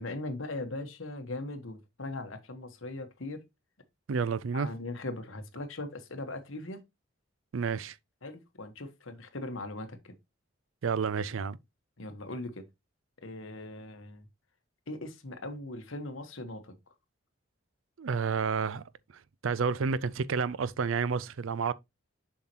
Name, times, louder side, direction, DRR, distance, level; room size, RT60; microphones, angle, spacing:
voice 1, 0.0-3.4 4.5-6.8 8.2-10.1 12.0-12.7 13.2-14.3 14.9-16.7, left 2 dB, 80° left, 1.3 m, -39 dB
voice 2, 4.1-4.7 7.5-8.0 10.8-11.6 18.0-18.8 19.4-21.7, right 5 dB, 80° right, 0.5 m, -30 dB
7.2 x 5.7 x 2.9 m
head